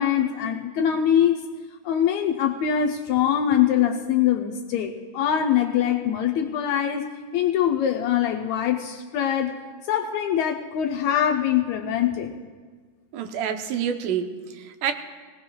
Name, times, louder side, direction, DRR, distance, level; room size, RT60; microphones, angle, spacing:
voice 1, 0.0-1.4 1.8-9.6 9.9-12.4, left 9 dB, 75° left, 2 dB, 1.7 m, -23 dB
voice 2, 13.1-14.9, right 8 dB, 80° right, 6 dB, 2.4 m, -28 dB
20.5 x 17.5 x 2.3 m, 1.5 s
omnidirectional pair, 3.7 m